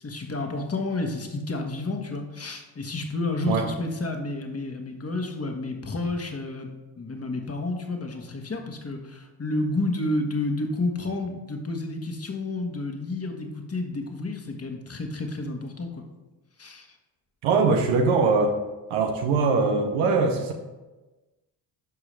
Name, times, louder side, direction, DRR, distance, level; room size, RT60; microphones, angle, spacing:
voice 1, 0.0-16.0 16.6-16.9, left 2 dB, 30° left, 3 dB, 1.5 m, -30 dB
voice 2, 17.4-18.6 18.9-20.5, right 4 dB, 90° right, 3 dB, 0.9 m, -22 dB
12.0 x 4.8 x 3.3 m, 1.1 s
supercardioid pair, 65°, 48 cm